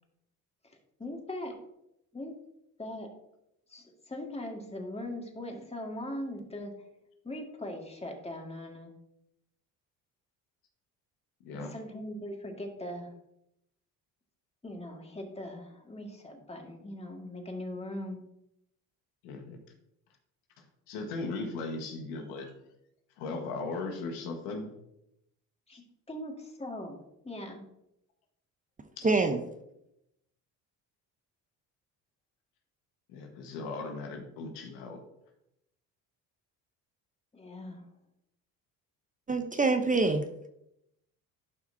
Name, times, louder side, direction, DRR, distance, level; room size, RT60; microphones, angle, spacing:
voice 1, 0.6-1.6 2.1-2.3 2.8-3.1 3.7-6.7 7.2-8.9 11.5-13.1 14.6-18.2 25.7-27.0 27.2-27.6 37.3-37.8, left 1 dB, 15° left, 2 dB, 1.9 m, -40 dB
voice 2, 11.4-11.7 19.2-19.6 20.6-22.5 23.2-24.7 25.7-25.8 29.0-29.1 33.1-35.0, left 3 dB, 85° left, 3 dB, 1.6 m, -38 dB
voice 3, 29.0-29.4 39.3-40.2, right 3 dB, 20° right, 7 dB, 0.8 m, -25 dB
11.5 x 5.7 x 2.7 m, 0.82 s
supercardioid pair, 75°, 38 cm